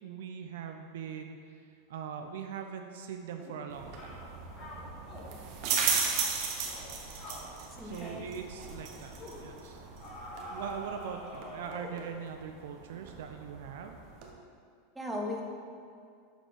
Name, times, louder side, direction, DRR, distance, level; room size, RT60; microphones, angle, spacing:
voice 1, 0.0-4.2 6.8-6.9 7.8-9.8 10.5-14.0, right 7 dB, 75° right, 5 dB, 0.5 m, -42 dB
sound 1, 3.4-3.6 4.0-4.2 4.6-5.3 5.6-5.8 6.1-6.3 6.6-6.9 7.2-7.5 7.9-8.2 8.5-8.7 9.2-9.4 10.0-12.1, left 1 dB, 40° left, 1.8 m, -45 dB
sound 2, 3.7-14.3, right 5 dB, 55° right, 1.1 m, -37 dB
voice 2, 7.8-8.3 14.9-15.4, left 1 dB, 10° right, -1 dB, 1.2 m, -38 dB
7.7 x 4.2 x 5.1 m, 2.3 s
hypercardioid pair, 100°, 0 cm